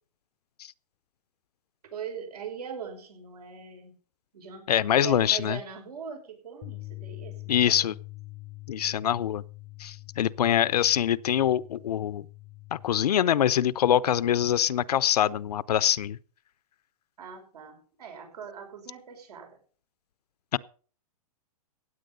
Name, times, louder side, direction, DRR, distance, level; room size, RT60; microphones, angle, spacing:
voice 1, 1.9-3.9 4.3-7.9 17.2-19.6, right 7 dB, 80° right, 5.7 m, -41 dB
voice 2, 4.7-5.6 7.5-7.9 8.7-9.4 9.8-12.3 12.7-16.2 20.5-20.6, left 10 dB, 85° left, 0.7 m, -24 dB
Bass guitar, 6.6-12.9, left 21 dB, 20° left, 0.5 m, -44 dB
16.0 x 8.7 x 5.3 m
hypercardioid pair, 155°, 20 cm